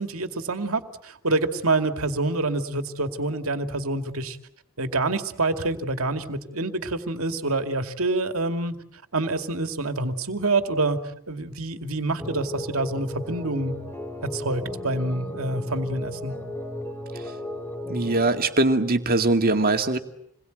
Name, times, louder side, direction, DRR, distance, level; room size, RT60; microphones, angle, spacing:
voice 1, 0.0-4.4 4.8-8.8 9.1-11.0 11.3-13.7 14.3-16.3, right 2 dB, 70° right, 7 dB, 2.4 m, -27 dB
sound 1, 12.2-18.4, left 1 dB, 10° left, 2.6 m, -35 dB
voice 2, 17.9-20.0, right 2 dB, 45° right, 6 dB, 2.3 m, -21 dB
28.5 x 21.5 x 9.2 m, 0.73 s
head